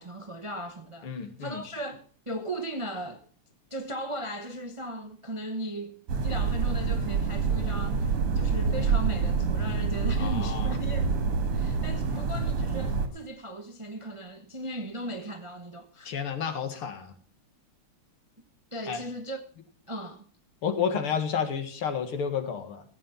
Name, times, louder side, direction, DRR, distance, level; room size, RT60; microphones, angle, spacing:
voice 1, 0.0-1.1 1.4-3.2 3.7-11.2 11.5-16.1 18.7-19.4 19.9-20.3, right 1 dB, 30° right, 0.6 m, -37 dB
voice 2, 1.0-1.6 10.2-10.7 12.1-12.2 16.1-17.1 18.9-19.0 20.6-22.8, left 7 dB, 75° left, 2.5 m, -31 dB
sound 1, 6.1-13.1, right 5 dB, 85° right, 2.6 m, -27 dB
15.5 x 8.6 x 5.6 m
omnidirectional pair, 2.4 m